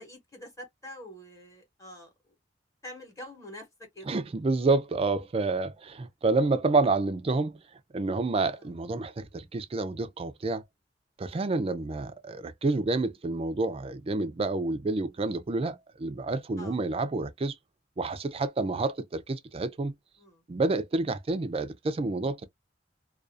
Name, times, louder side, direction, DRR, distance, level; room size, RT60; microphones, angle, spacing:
voice 1, 0.0-2.3 2.8-4.1 8.5-8.7 16.6-16.8 20.2-20.4, left 1 dB, 15° left, 1.0 m, -46 dB
voice 2, 4.1-7.6 7.9-10.6 11.2-17.5 18.0-19.9 20.5-22.5, right 3 dB, 35° right, 0.4 m, -28 dB
2.4 x 2.3 x 2.6 m
head